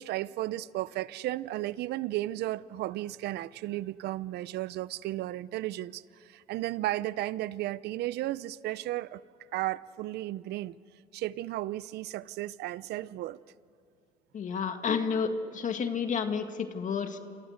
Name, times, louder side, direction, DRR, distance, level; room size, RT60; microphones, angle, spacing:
voice 1, 0.0-9.2 9.5-10.7 11.1-13.4, right 15 dB, 75° right, 0.7 m, -34 dB
voice 2, 14.3-17.2, left 6 dB, 50° left, 2.0 m, -30 dB
28.5 x 27.5 x 6.6 m
cardioid pair, 110°, 17 cm